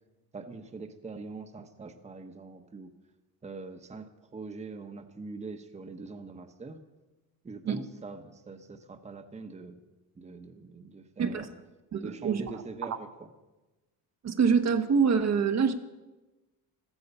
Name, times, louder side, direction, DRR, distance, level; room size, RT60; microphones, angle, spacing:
voice 1, 0.3-2.9 3.4-6.8 7.4-9.8 10.2-11.5 12.0-13.3, right 3 dB, 20° right, 7 dB, 1.0 m, -43 dB
voice 2, 11.9-12.4 14.2-15.7, right 6 dB, 45° right, 7 dB, 1.1 m, -25 dB
15.5 x 13.5 x 5.5 m, 1.1 s
cardioid pair, 130°, 37 cm